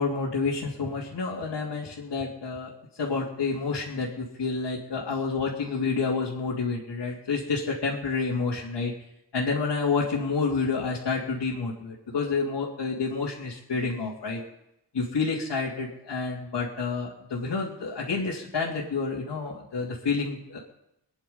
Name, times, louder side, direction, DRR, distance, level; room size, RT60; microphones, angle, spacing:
voice 1, 0.0-2.7 3.0-8.9 9.3-14.4 14.9-20.6, left 4 dB, 75° left, -6 dB, 2.9 m, -29 dB
24.0 x 10.0 x 5.5 m, 0.84 s
wide cardioid pair, 85°, 41 cm